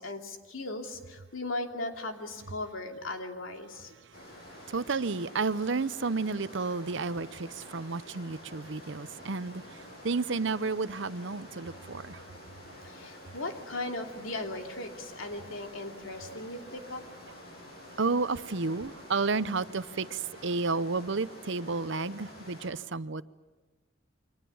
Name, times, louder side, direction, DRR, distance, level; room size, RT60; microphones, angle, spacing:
voice 1, 0.0-3.9 12.8-17.0, left 2 dB, 90° left, 2.8 m, -38 dB
sound 1, 4.1-22.7, left 1 dB, 50° left, 7.3 m, -49 dB
voice 2, 4.6-12.2 18.0-23.2, right 4 dB, 65° right, 0.8 m, -31 dB
29.5 x 24.5 x 7.1 m
head